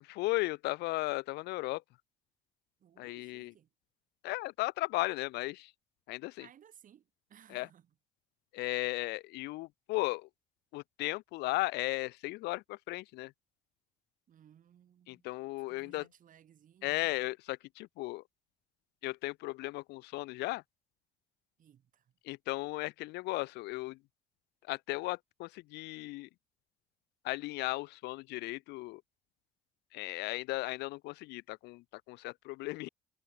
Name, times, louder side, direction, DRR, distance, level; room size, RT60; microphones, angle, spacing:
voice 1, 0.0-1.8 3.0-3.5 4.2-5.7 6.1-6.5 7.5-7.7 8.5-10.3 10.7-13.3 15.1-16.0 16.8-18.2 19.0-20.6 22.2-24.0 24.7-26.3 27.2-29.0 29.9-32.9, left 21 dB, 85° left, 0.4 m, -36 dB
voice 2, 2.8-3.7 6.4-7.9 14.3-15.3 15.7-17.1 21.6-22.1, right 9 dB, 50° right, 4.9 m, -61 dB
cardioid pair, 110°, 17 cm